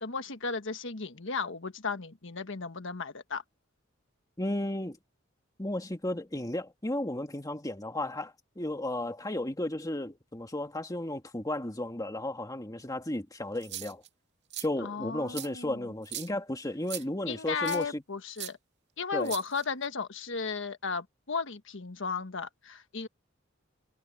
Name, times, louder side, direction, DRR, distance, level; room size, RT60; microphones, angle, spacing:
voice 1, 0.0-3.4 14.8-15.9 17.3-18.6 19.0-23.1, left 5 dB, 70° left, 1.5 m, -35 dB
voice 2, 4.4-5.0 5.6-14.0 14.6-18.0 19.1-19.3, left 1 dB, 20° left, 2.0 m, -34 dB
sound 1, 13.6-14.1 14.5-14.7 15.3-15.5 16.0-16.3 16.9-17.0 17.7-17.8 18.4-18.5 19.2-19.8, right 13 dB, 60° right, 2.4 m, -39 dB
head